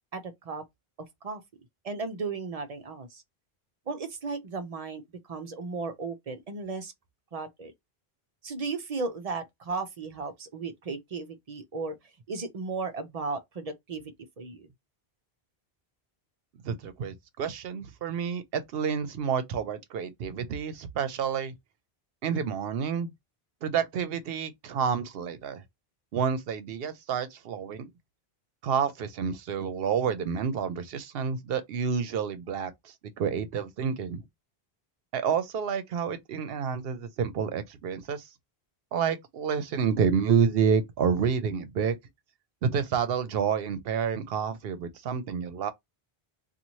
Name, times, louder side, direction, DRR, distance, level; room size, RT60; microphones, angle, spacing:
voice 1, 0.1-0.6 1.2-1.4 1.8-3.2 3.9-6.9 7.3-7.7 8.4-12.0 12.3-14.0 14.4-14.7, right 4 dB, 45° right, 0.5 m, -35 dB
voice 2, 16.6-21.5 22.2-23.1 23.6-25.6 26.1-27.9 28.6-32.7 33.2-34.2 35.1-38.2 38.9-42.0 42.6-45.7, right 7 dB, 75° right, 0.8 m, -29 dB
2.6 x 2.4 x 3.0 m
omnidirectional pair, 1.0 m